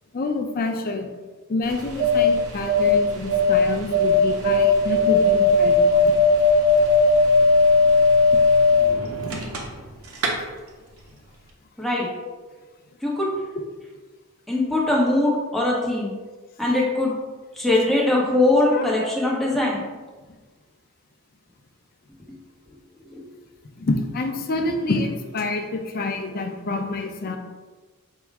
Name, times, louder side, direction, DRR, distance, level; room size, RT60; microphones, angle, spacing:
voice 1, 0.1-1.1 1.5-6.1 9.2-9.4 18.7-18.9 19.5-19.6 23.8-27.4, left 3 dB, 40° left, 4 dB, 0.4 m, -27 dB
sound 1, 1.7-9.9 10.2-10.3, left 2 dB, 70° right, 0.7 m, -18 dB
voice 2, 14.5-16.1 16.6-17.1 17.6-19.8 23.1-23.2, left 2 dB, ahead, -4 dB, 0.7 m, -21 dB
4.5 x 2.0 x 4.6 m, 1.3 s
head